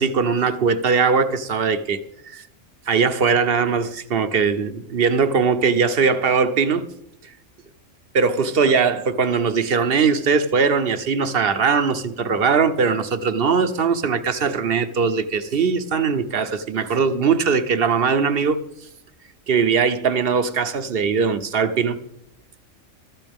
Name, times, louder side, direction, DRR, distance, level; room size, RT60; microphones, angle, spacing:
voice 1, 0.0-2.0 2.3-2.4 2.9-6.9 8.1-18.6 19.5-22.0, right 5 dB, 50° right, 0.9 m, -20 dB
14.5 x 13.5 x 3.6 m
omnidirectional pair, 1.3 m